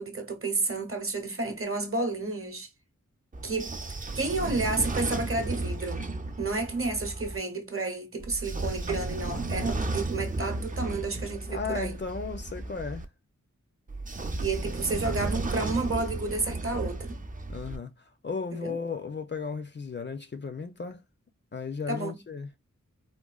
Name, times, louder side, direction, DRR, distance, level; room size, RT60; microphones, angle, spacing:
voice 1, 0.0-2.7 3.4-3.8 4.2-6.1 6.4-12.0 14.4-17.2 18.5-18.8 21.9-22.2, right 3 dB, 45° right, 0.8 m, -31 dB
Train / Sliding door, 3.3-7.4 8.2-13.0 13.9-17.8, right 2 dB, 25° right, 0.4 m, -34 dB
voice 2, 11.5-13.1 17.5-21.0 21.5-22.5, left 5 dB, 35° left, 0.5 m, -35 dB
3.7 x 2.3 x 2.3 m
wide cardioid pair, 65°, 31 cm